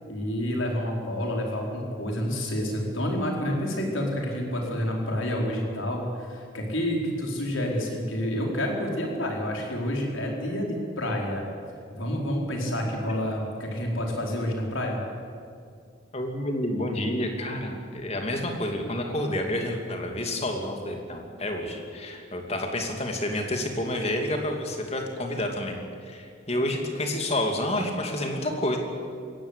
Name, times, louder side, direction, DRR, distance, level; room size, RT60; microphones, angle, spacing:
voice 1, 0.1-11.4 11.9-15.0, equal, 75° left, 0 dB, 4.7 m, -29 dB
voice 2, 16.1-28.8, left 1 dB, 30° left, 3 dB, 2.6 m, -29 dB
21.0 x 16.5 x 8.4 m, 2.3 s
head